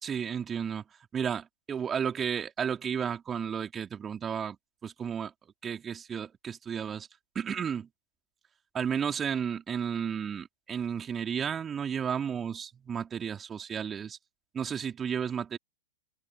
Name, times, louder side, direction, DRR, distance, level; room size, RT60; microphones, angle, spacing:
voice 1, 0.0-0.8 1.1-4.6 4.8-5.3 5.6-7.1 7.4-7.9 8.7-14.2 14.5-15.6, right 7 dB, 20° right, 3.5 m, -33 dB
figure-of-eight pair, 100°, 0 cm